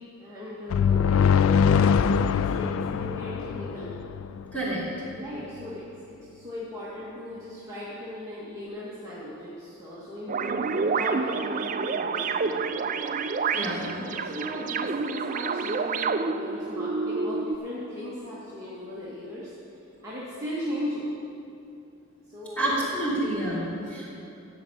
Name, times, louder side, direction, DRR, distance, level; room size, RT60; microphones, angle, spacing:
voice 1, 0.2-2.0 2.3-3.9 5.1-5.8 6.3-12.9 13.7-19.5 20.0-21.2 22.3-22.8, left 1 dB, 15° right, -10 dB, 1.9 m, -37 dB
sound 1, 0.7-4.4, left 6 dB, 65° left, 0.3 m, -23 dB
voice 2, 4.5-4.8 13.5-14.0 22.6-24.2, right 1 dB, 5° left, -8 dB, 3.1 m, -29 dB
sound 2, 10.3-17.6, right 4 dB, 35° right, 0.4 m, -28 dB
14.5 x 5.2 x 8.7 m, 2.7 s
head